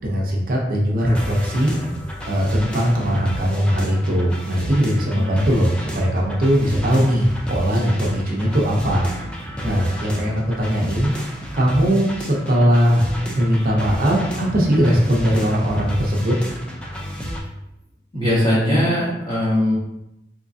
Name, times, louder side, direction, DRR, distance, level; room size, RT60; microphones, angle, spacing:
voice 1, 0.0-1.8 2.3-11.1 11.5-16.4, equal, 50° right, -2 dB, 0.6 m, -20 dB
sound 1, 1.0-17.4, equal, 5° left, 0.3 m, -32 dB
voice 2, 18.1-19.8, left 1 dB, 25° left, -8 dB, 1.3 m, -20 dB
3.5 x 3.1 x 2.6 m, 0.89 s
head